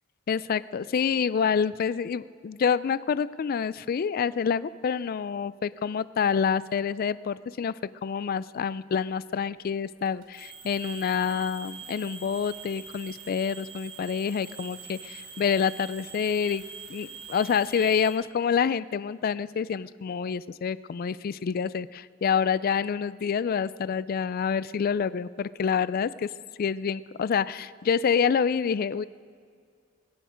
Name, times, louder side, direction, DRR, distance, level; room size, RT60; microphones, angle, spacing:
voice 1, 0.3-16.6 16.9-26.3 26.6-29.1, left 6 dB, 50° left, 18 dB, 0.3 m, -27 dB
sound 1, 10.1-18.1, right 5 dB, 80° right, 3.6 m, -44 dB
21.0 x 10.0 x 5.1 m, 2.1 s
head